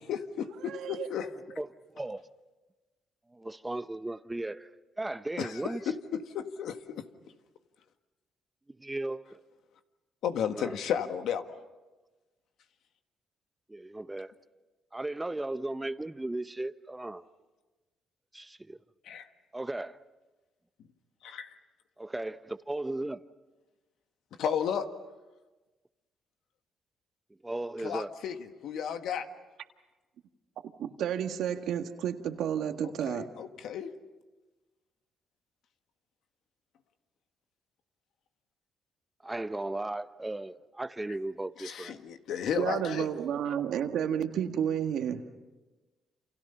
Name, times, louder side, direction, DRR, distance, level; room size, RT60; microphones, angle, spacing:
voice 1, 0.1-1.4 5.4-7.1 10.2-11.5 19.1-19.3 21.2-21.5 24.4-24.9 27.8-28.3 28.6-29.3 33.1-33.9 41.6-43.1, left 8 dB, 80° left, 1.6 m, -33 dB
voice 2, 0.6-1.1 30.8-33.2 42.5-45.2, right 9 dB, 75° right, 1.8 m, -31 dB
voice 3, 3.3-4.7 5.0-5.8 8.8-9.4 10.5-10.8 13.7-14.3 14.9-17.2 18.3-18.8 19.5-20.0 22.0-23.2 27.4-28.1 39.2-42.0, right 2 dB, 15° right, 0.9 m, -36 dB
29.0 x 28.0 x 5.7 m
cardioid pair, 90°, 0 cm